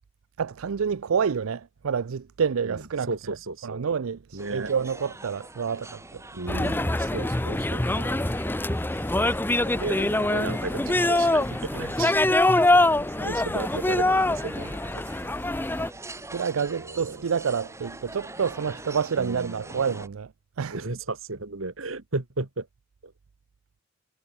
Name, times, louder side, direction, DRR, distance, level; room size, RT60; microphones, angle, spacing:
voice 1, 0.4-3.1 3.6-6.2 12.7-13.1 16.3-20.3 20.6-20.9, right 6 dB, 90° right, 0.5 m, -28 dB
voice 2, 3.1-3.9 4.3-4.7 6.3-8.2 9.7-12.3 13.2-15.0 16.8-17.2 19.2-19.8 20.7-22.7 23.0-23.1, right 3 dB, 70° right, 1.8 m, -34 dB
sound 1, 4.4-20.1, right 2 dB, 15° right, 4.9 m, -44 dB
sound 2, 6.5-15.9, left 2 dB, 10° left, 0.7 m, -24 dB
head